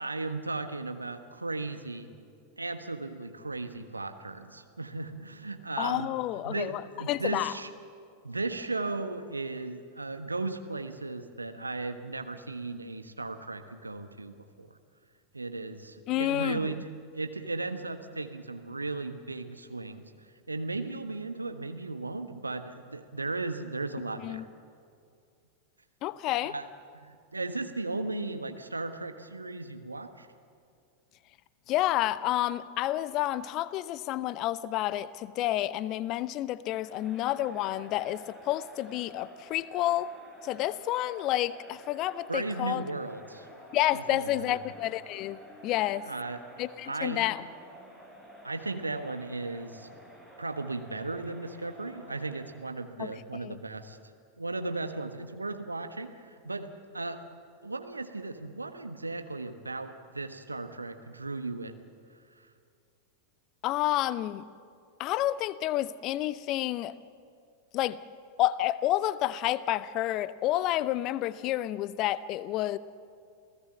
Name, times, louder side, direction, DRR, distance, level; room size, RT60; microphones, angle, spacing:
voice 1, 0.0-2.1 2.6-6.1 6.4-7.7 8.2-14.8 15.3-20.1 20.5-24.5 26.5-26.7 26.9-30.3 42.3-43.5 43.9-44.6 45.6-45.7 46.0-46.4 46.8-47.2 48.4-49.9 50.4-54.0 54.4-57.2 57.6-61.8 62.4-62.5, right 3 dB, 80° right, 8 dB, 1.3 m, -36 dB
voice 2, 5.8-6.8 7.1-7.5 16.1-16.6 24.2-24.4 26.0-26.5 31.7-40.1 40.4-42.8 43.7-46.1 46.6-47.4 53.0-53.6 63.6-64.4 65.0-66.9 67.7-68.0 68.4-72.8, left 14 dB, 40° left, 18 dB, 0.7 m, -29 dB
Crowd, 36.6-52.8, equal, 5° right, 5.2 m, -51 dB
28.0 x 17.0 x 7.6 m, 2.4 s
figure-of-eight pair, 90°, 0 cm